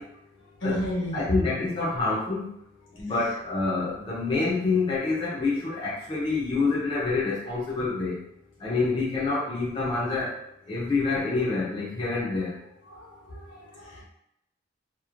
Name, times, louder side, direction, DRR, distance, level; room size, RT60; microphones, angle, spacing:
voice 1, 0.6-1.2 12.9-14.0, equal, 75° left, -5 dB, 1.1 m, -32 dB
voice 2, 1.1-2.4 3.0-8.1 8.6-10.3 10.7-12.5, left 3 dB, 25° left, -7 dB, 0.6 m, -27 dB
3.0 x 2.6 x 2.4 m, 0.79 s
head